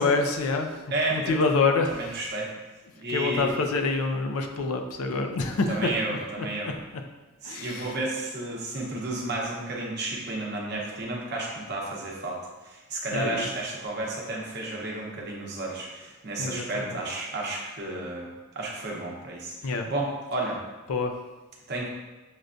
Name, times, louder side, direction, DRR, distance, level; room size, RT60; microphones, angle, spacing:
voice 1, 0.0-0.8 1.1-2.1 3.1-6.7 7.4-8.0 13.1-13.5 16.4-17.0 19.6-19.9 20.9-21.1, left 3 dB, 85° left, 5 dB, 0.4 m, -27 dB
voice 2, 0.9-1.3 1.9-2.5 3.0-3.5 5.7-6.7 7.4-12.4 12.6-18.3 18.5-20.6 21.7-21.9, right 2 dB, 50° right, -2 dB, 0.8 m, -32 dB
6.4 x 2.2 x 2.5 m, 1.2 s
head